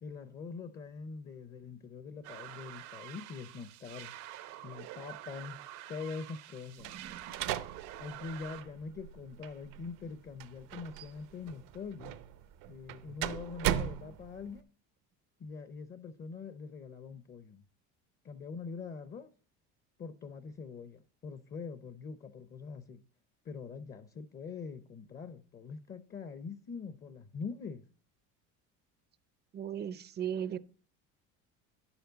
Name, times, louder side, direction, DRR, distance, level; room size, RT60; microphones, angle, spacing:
voice 1, 0.0-4.1 4.6-6.9 8.0-12.2 12.7-14.7 15.4-17.6 18.2-19.3 20.0-23.0 23.4-27.8, left 5 dB, 30° left, 0.6 m, -44 dB
sound 1, 2.2-8.6, right 13 dB, 90° right, 1.2 m, -47 dB
sound 2, 6.8-14.6, right 11 dB, 65° right, 0.7 m, -39 dB
voice 2, 6.9-7.8 29.5-30.6, right 9 dB, 30° right, 0.5 m, -38 dB
9.9 x 7.1 x 3.9 m
supercardioid pair, 110°, 35 cm